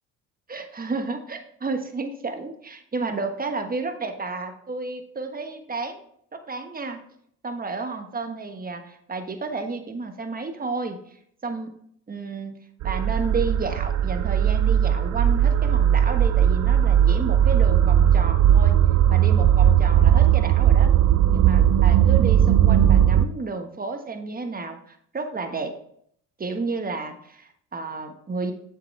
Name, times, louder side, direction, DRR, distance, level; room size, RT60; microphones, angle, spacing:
voice 1, 0.5-6.0 6.3-7.0 7.4-11.2 11.4-11.7 12.1-12.6 12.8-18.8 19.1-20.9 21.3-25.7 26.4-28.5, right 3 dB, 25° right, 6 dB, 1.3 m, -31 dB
sound 1, 12.8-23.3, right 10 dB, 50° right, 0.5 m, -18 dB
7.4 x 7.0 x 3.2 m, 0.66 s
hypercardioid pair, 65°, 36 cm